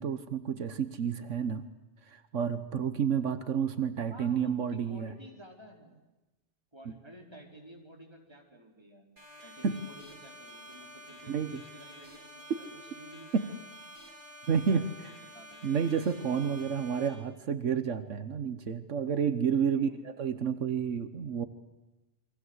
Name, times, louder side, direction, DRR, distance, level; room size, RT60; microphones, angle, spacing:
voice 1, 0.0-1.7 2.0-5.1 6.8-6.9 9.6-9.7 11.3-11.5 13.3-13.4 14.5-14.8 15.6-19.9 20.2-21.5, right 7 dB, 85° right, 11 dB, 1.5 m, -30 dB
voice 2, 4.1-6.0 6.7-9.1 9.4-13.7 14.7-15.8 16.6-16.7 19.7-20.0, equal, 20° right, 1 dB, 4.7 m, -52 dB
sound 1, 9.2-17.1, equal, 45° right, 7.6 m, -50 dB
29.5 x 23.5 x 8.1 m, 1.1 s
omnidirectional pair, 1.2 m